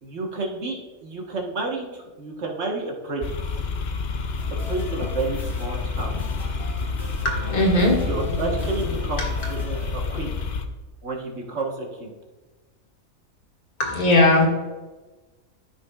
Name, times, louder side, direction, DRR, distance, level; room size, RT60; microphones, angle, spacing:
voice 1, 0.0-3.3 4.7-6.2 6.8-6.9 8.0-10.4 11.0-12.1, right 3 dB, 50° right, 0 dB, 1.5 m, -31 dB
sound 1, 3.2-10.7, left 5 dB, 55° left, 0.5 m, -29 dB
sound 2, 4.3-9.9, right 1 dB, ahead, 2.6 m, -41 dB
voice 2, 7.2-8.4 8.8-8.9 9.2-9.5 13.8-14.5, left 1 dB, 90° left, -2 dB, 2.3 m, -20 dB
13.5 x 5.7 x 2.4 m, 1.2 s
omnidirectional pair, 1.5 m